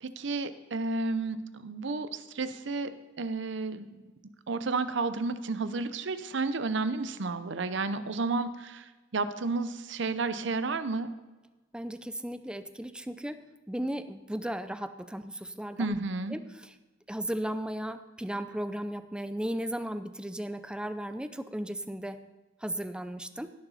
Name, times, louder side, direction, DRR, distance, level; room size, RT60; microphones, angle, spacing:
voice 1, 0.0-2.9 3.2-4.0 4.5-11.1 15.8-16.3, right 3 dB, 70° right, 12 dB, 0.7 m, -32 dB
voice 2, 11.7-16.0 16.3-16.7 17.1-22.2 22.6-23.5, right 1 dB, 5° right, 10 dB, 0.5 m, -36 dB
17.0 x 7.0 x 4.1 m, 1.2 s
head